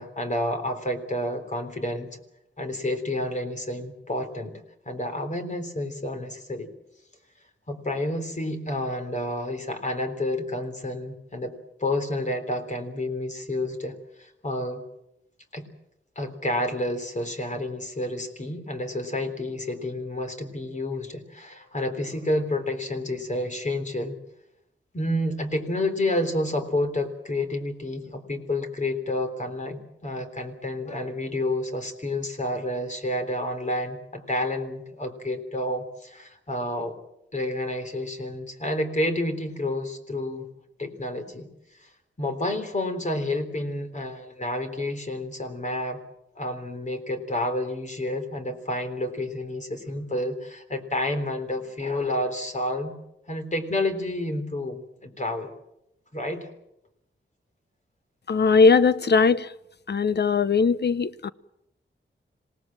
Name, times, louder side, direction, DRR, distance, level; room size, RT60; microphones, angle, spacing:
voice 1, 0.0-2.2 2.6-4.6 4.9-6.7 7.7-14.8 15.5-15.7 16.2-24.2 24.9-36.9 37.3-40.5 40.8-41.5 41.8-41.9 42.2-46.0 46.4-52.9 53.3-55.5 56.1-56.5, left 1 dB, 35° left, 3.6 m, -29 dB
voice 2, 58.3-59.5 59.9-61.3, left 4 dB, 55° left, 0.9 m, -19 dB
26.5 x 18.5 x 7.6 m
wide cardioid pair, 115°, 20 cm